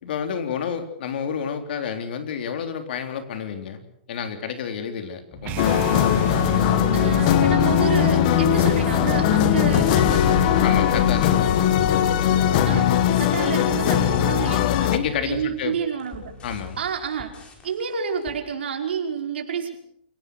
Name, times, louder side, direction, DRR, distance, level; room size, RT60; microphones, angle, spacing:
voice 1, 0.0-5.8 10.6-11.9 14.9-15.8 16.4-16.8, left 7 dB, 60° left, 7 dB, 3.7 m, -30 dB
sound 1, 5.4-11.6, right 19 dB, 30° right, 0.9 m, -32 dB
sound 2, 5.6-15.0, left 11 dB, 45° left, 1.7 m, -19 dB
voice 2, 6.9-10.8 12.7-15.0 15.2-16.3 16.8-17.3 17.6-19.8, right 7 dB, 80° right, 3 dB, 5.3 m, -29 dB
sound 3, 7.7-18.4, left 3 dB, 20° left, 4.7 m, -42 dB
28.5 x 17.5 x 6.5 m, 0.68 s
hypercardioid pair, 145°, 6 cm